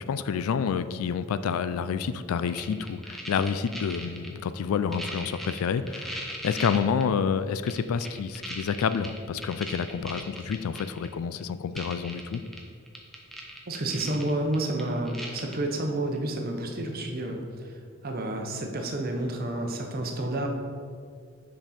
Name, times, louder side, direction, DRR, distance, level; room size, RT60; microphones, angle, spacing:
voice 1, 0.1-12.4, left 6 dB, 85° left, 13 dB, 0.3 m, -28 dB
sound 1, 2.5-4.3 4.7-7.0 7.7-11.1 11.4-11.5 11.8-12.6 12.9-15.5 16.2-16.3, equal, ahead, 0.6 m, -38 dB
voice 2, 13.7-17.8 18.0-20.5, right 1 dB, 45° right, 3 dB, 0.8 m, -30 dB
5.9 x 5.3 x 4.2 m, 2.1 s
head